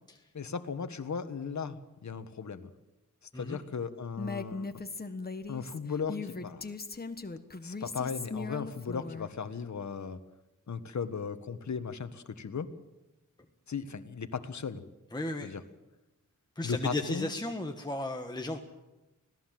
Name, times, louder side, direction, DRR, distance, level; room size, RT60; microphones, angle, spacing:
voice 1, 0.3-2.7 3.3-4.7 5.5-6.6 7.6-10.2 10.7-12.7 13.7-14.8 15.4-15.6 16.6-17.3, left 6 dB, 60° left, 9 dB, 1.5 m, -36 dB
Female speech woman speaking, 4.2-9.3, left 3 dB, 30° left, 1.4 m, -39 dB
voice 2, 15.1-15.5 16.5-18.6, left 2 dB, 15° left, 3 dB, 1.5 m, -35 dB
25.5 x 17.5 x 7.7 m, 1.0 s
wide cardioid pair, 100°, 31 cm